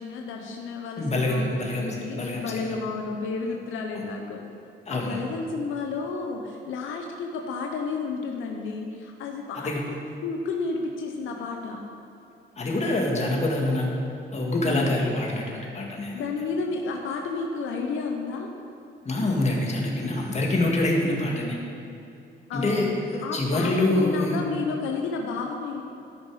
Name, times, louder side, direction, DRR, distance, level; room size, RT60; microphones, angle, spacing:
voice 1, 0.0-4.4 4.9-10.0 10.2-11.8 14.6-15.0 16.1-18.5 22.5-25.8, left 4 dB, 85° left, 2 dB, 0.8 m, -32 dB
voice 2, 1.0-2.7 3.9-4.0 4.9-5.2 9.6-9.8 12.6-13.9 14.3-16.2 19.0-21.6 22.5-24.4, left 1 dB, 35° left, -1 dB, 1.9 m, -25 dB
13.0 x 5.6 x 4.9 m, 2.6 s
cardioid pair, 90°, 20 cm